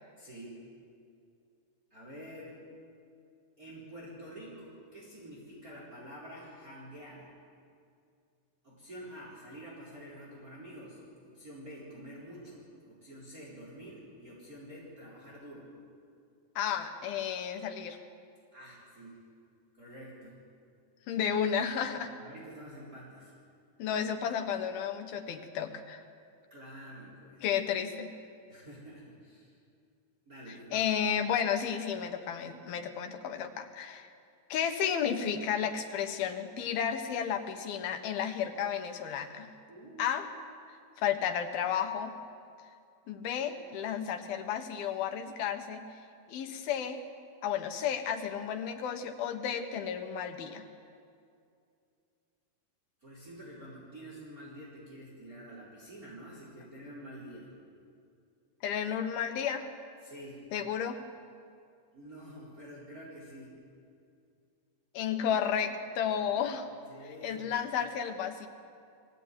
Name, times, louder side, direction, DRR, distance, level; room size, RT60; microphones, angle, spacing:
voice 1, 0.2-0.6 1.9-2.6 3.6-7.3 8.6-15.7 18.5-19.3 19.7-20.4 22.1-23.3 26.5-27.5 28.5-29.5 30.2-30.9 39.7-40.2 53.0-57.5 60.0-60.5 61.9-63.5 66.3-66.4 66.9-67.5, equal, 25° right, -5 dB, 4.7 m, -48 dB
voice 2, 16.6-18.0 21.1-22.1 23.8-26.0 27.4-28.1 30.7-34.1 34.5-39.5 40.0-40.3 41.0-42.2 43.1-45.8 46.3-47.0 47.4-50.6 58.6-59.7 60.5-61.0 64.9-66.7 67.2-68.5, left 8 dB, 85° left, 6 dB, 3.2 m, -32 dB
21.5 x 16.0 x 9.5 m, 2.4 s
omnidirectional pair, 4.2 m